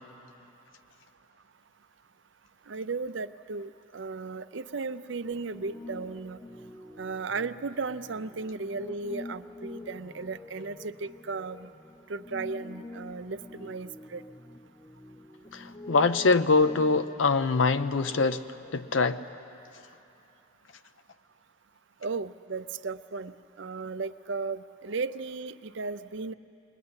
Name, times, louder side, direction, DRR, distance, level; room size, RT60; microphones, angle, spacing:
voice 1, 2.7-6.4 7.0-11.7 12.1-14.2 22.0-26.3, right 4 dB, 65° right, 13 dB, 0.6 m, -35 dB
Piano, 5.2-18.9, left 2 dB, 10° left, 0.7 m, -46 dB
voice 2, 15.5-18.4 18.7-19.2, left 4 dB, 75° left, 11 dB, 0.6 m, -24 dB
22.0 x 20.5 x 9.7 m, 2.9 s
head